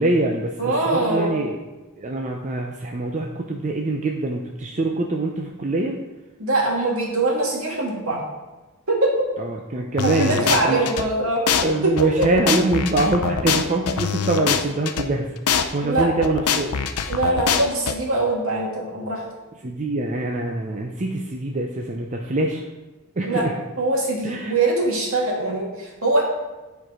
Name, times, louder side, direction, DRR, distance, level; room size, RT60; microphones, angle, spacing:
voice 1, 0.0-1.6 2.0-6.0 9.4-10.8 11.6-15.4 15.7-16.8 19.6-22.6 23.2-23.5 24.2-24.5, right 2 dB, 35° right, 1 dB, 0.6 m, -24 dB
voice 2, 0.6-1.4 6.4-8.2 8.9-9.2 10.0-11.4 11.8-12.3 15.8-16.1 17.1-19.2 23.2-23.4 23.8-26.2, right 2 dB, 65° right, -2 dB, 2.2 m, -22 dB
sound 1, 10.0-11.0 11.5-11.6 12.0-15.0 15.5-15.6 16.0-17.9, left 7 dB, 90° left, 0.6 m, -23 dB
10.5 x 4.7 x 4.9 m, 1.2 s
head